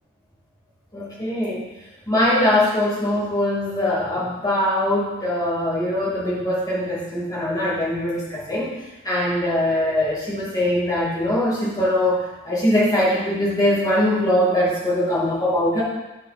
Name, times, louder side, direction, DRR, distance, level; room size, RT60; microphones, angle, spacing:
voice 1, 0.9-1.7 2.1-15.8, left 1 dB, 15° left, -8 dB, 2.5 m, -22 dB
9.6 x 4.8 x 4.3 m, 1.0 s
head